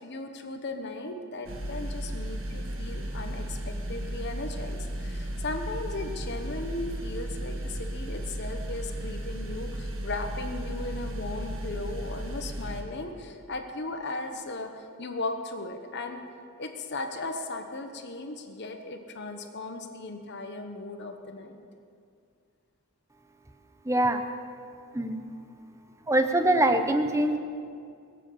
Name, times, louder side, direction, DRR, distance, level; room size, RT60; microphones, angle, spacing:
voice 1, 0.0-16.2 16.6-21.5, left 2 dB, 50° left, 5 dB, 1.2 m, -37 dB
sound 1, 1.4-12.8, right 1 dB, 60° right, 1.8 m, -35 dB
voice 2, 23.8-24.2 24.9-25.2 26.1-27.4, right 1 dB, 15° right, 7 dB, 0.7 m, -23 dB
21.0 x 7.8 x 6.8 m, 2.4 s
head